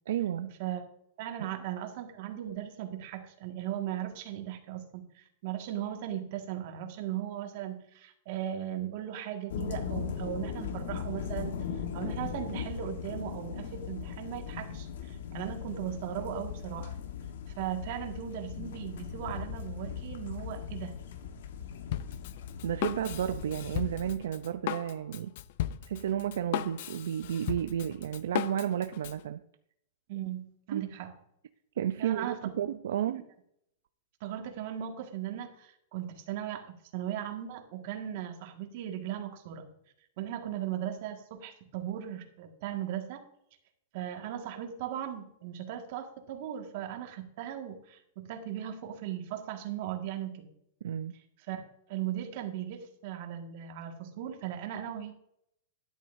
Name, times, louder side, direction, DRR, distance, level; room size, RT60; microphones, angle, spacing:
voice 1, 0.1-0.5 1.4-1.5 22.6-25.3 25.9-29.4 30.7-30.8 31.8-33.2 50.8-51.2, right 10 dB, 80° right, 10 dB, 0.5 m, -32 dB
voice 2, 1.2-11.6 11.9-16.9 17.5-20.9 30.1-31.1 32.0-32.5 33.1-33.2 34.2-39.7 40.2-43.2 43.9-50.5 51.5-55.1, right 11 dB, 55° right, 4 dB, 1.8 m, -37 dB
sound 1, 9.5-24.1, left 7 dB, 75° left, 1.3 m, -39 dB
Drum kit, 21.9-29.2, left 12 dB, 60° left, 0.5 m, -36 dB
12.5 x 9.9 x 2.7 m, 0.72 s
hypercardioid pair, 140°, 0 cm